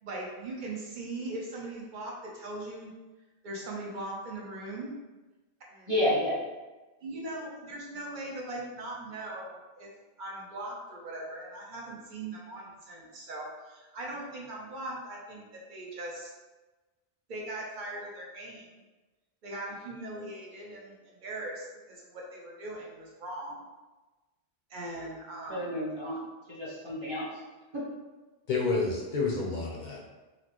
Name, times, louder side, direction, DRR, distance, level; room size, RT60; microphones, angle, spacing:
voice 1, 0.0-2.9 3.4-4.9 5.7-5.9 7.0-9.9 10.2-16.3 17.3-18.6 19.4-23.6 24.7-25.7, right 2 dB, 50° right, -2 dB, 0.8 m, -40 dB
voice 2, 5.9-6.4 25.5-26.2 26.5-27.3 27.7-27.8, left 1 dB, 25° right, -7 dB, 1.0 m, -30 dB
voice 3, 28.5-30.1, left 3 dB, 50° left, -2 dB, 0.7 m, -29 dB
4.2 x 2.0 x 3.0 m, 1.2 s
omnidirectional pair, 1.1 m